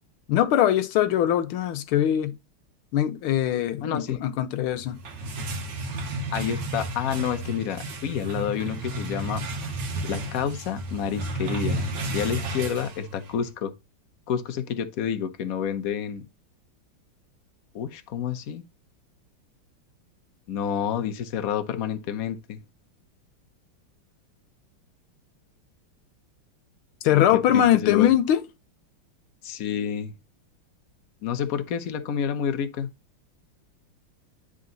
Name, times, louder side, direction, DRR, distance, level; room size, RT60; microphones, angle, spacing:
voice 1, 0.3-2.3 2.9-5.0 27.0-28.4, left 11 dB, 85° left, 1.6 m, -22 dB
voice 2, 3.8-4.2 6.3-9.4 10.0-13.7 14.3-16.3 17.7-18.6 20.5-22.6 27.1-28.1 29.4-30.1 31.2-32.9, left 8 dB, 65° left, 0.9 m, -29 dB
sound 1, 4.8-13.5, right 2 dB, 60° right, 1.7 m, -32 dB
9.7 x 3.8 x 3.8 m
omnidirectional pair, 2.3 m